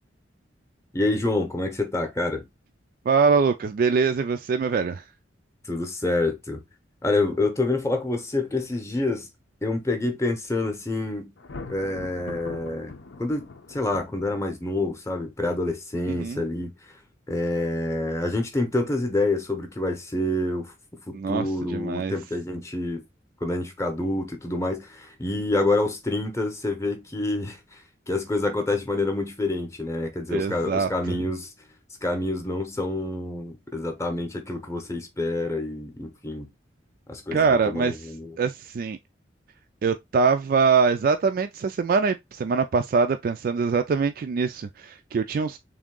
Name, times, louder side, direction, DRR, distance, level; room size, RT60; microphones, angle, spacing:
voice 1, 0.9-2.5 5.7-6.6 7.0-9.3 9.6-11.3 11.7-16.7 17.3-23.0 23.4-27.8 28.1-31.5 32.0-36.5 37.1-38.3, left 2 dB, 15° left, 0.7 m, -27 dB
voice 2, 3.1-5.0 16.1-16.4 21.1-22.1 30.3-31.2 37.3-38.1 38.4-39.0 39.8-45.6, right 5 dB, 50° right, 0.3 m, -23 dB
Thunder, 11.4-14.7, left 3 dB, 80° left, 0.7 m, -42 dB
3.6 x 2.7 x 3.7 m
head